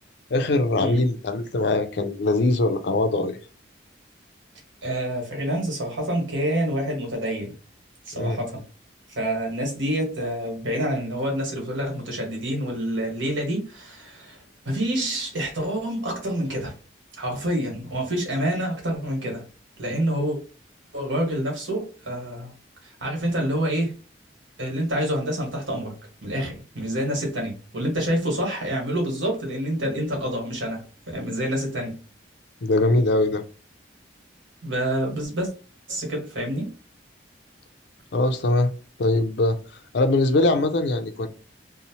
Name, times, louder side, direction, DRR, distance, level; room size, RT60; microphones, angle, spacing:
voice 1, 0.3-3.4 8.1-8.4 32.6-33.4 38.1-38.7 39.0-39.6 39.9-41.3, left 2 dB, 60° left, 0.4 m, -22 dB
voice 2, 4.8-7.5 8.0-8.6 9.2-14.4 14.6-16.7 17.2-19.5 19.8-20.4 20.9-22.5 22.8-23.9 24.6-32.0 34.6-35.5 35.9-36.7, right 1 dB, 85° right, 1.3 m, -27 dB
2.7 x 2.0 x 2.8 m
head